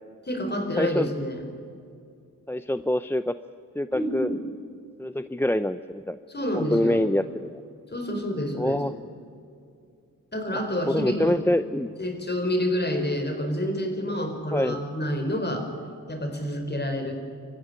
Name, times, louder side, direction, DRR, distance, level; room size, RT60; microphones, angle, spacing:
voice 1, 0.3-1.4 3.9-4.4 6.3-7.0 7.9-8.8 10.3-11.4 12.0-15.7 16.1-17.1, equal, 30° left, 5 dB, 4.5 m, -28 dB
voice 2, 0.8-1.1 2.5-3.3 3.8-4.3 5.0-6.2 6.5-7.6 8.6-8.9 10.5-10.6 10.9-11.9 14.5-14.8, left 1 dB, 5° left, 12 dB, 0.6 m, -25 dB
25.5 x 15.0 x 9.8 m, 2.5 s
cardioid pair, 60°, 36 cm